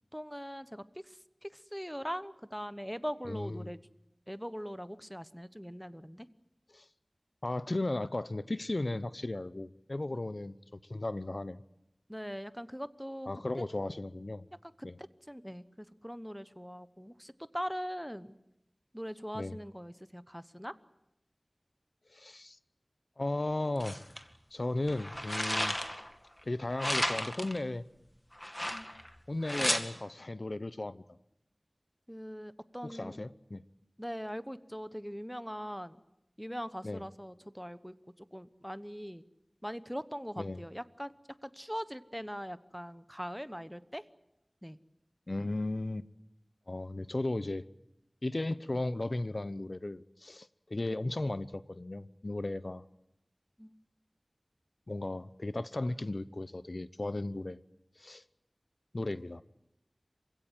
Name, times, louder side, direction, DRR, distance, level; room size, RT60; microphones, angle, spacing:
voice 1, 0.1-3.8 4.3-6.3 12.1-13.3 13.6-13.7 14.6-18.3 18.9-20.7 28.7-28.9 32.1-33.3 34.0-36.0 36.4-39.2 39.6-41.1 41.4-44.0 44.6-44.8 53.6-53.7, equal, ahead, 1.0 m, -41 dB
voice 2, 3.3-3.7 6.7-6.8 7.4-11.6 13.3-14.4 14.8-15.0 19.3-19.6 22.1-22.6 23.2-24.0 24.5-25.8 26.4-27.8 29.3-31.0 32.8-33.6 36.8-37.0 40.4-40.6 45.3-46.0 46.7-47.6 48.2-52.8 54.9-57.6 58.0-58.2 58.9-59.4, left 2 dB, 65° left, 0.9 m, -35 dB
sound 1, 23.8-24.2 24.9-26.1 26.8-27.6 28.4-29.1 29.4-29.8, left 1 dB, 25° left, 2.1 m, -33 dB
27.0 x 16.5 x 9.1 m
wide cardioid pair, 45°, 0 cm